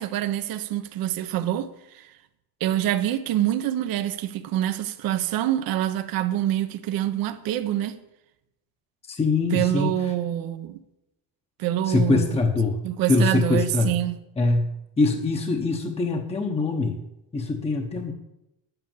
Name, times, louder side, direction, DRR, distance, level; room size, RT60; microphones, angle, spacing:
voice 1, 0.0-2.1 2.6-8.0 9.5-10.8 11.6-12.4 12.8-14.2, right 12 dB, 65° right, 1.0 m, -26 dB
voice 2, 9.1-10.0 11.9-12.8 13.1-13.9 14.4-17.0 17.3-18.1, left 3 dB, 15° left, 1.0 m, -23 dB
10.5 x 9.2 x 7.3 m
cardioid pair, 155°, 38 cm